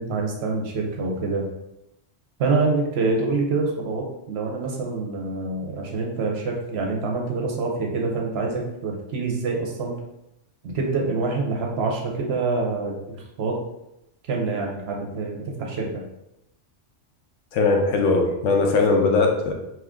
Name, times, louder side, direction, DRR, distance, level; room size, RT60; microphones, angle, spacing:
voice 1, 0.0-1.5 2.4-9.9 10.6-13.6 14.3-16.0, right 3 dB, 65° right, 0 dB, 0.8 m, -26 dB
voice 2, 17.5-19.5, left 3 dB, 80° left, 2 dB, 0.9 m, -20 dB
2.9 x 2.4 x 3.5 m, 0.87 s
omnidirectional pair, 1.3 m